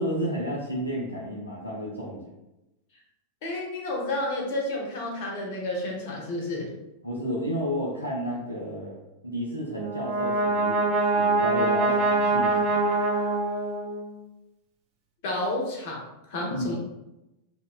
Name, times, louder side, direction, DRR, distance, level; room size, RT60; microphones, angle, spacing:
voice 1, 0.0-2.2 7.0-9.0 9.2-12.9 16.5-16.7, equal, 90° left, -4 dB, 0.4 m, -32 dB
voice 2, 3.4-6.7 15.2-16.0 16.3-16.8, left 1 dB, 50° left, -1 dB, 0.7 m, -30 dB
Brass instrument, 9.7-14.1, right 2 dB, 45° right, 0.6 m, -24 dB
2.8 x 2.1 x 2.3 m, 0.95 s
figure-of-eight pair, 90°, 0 cm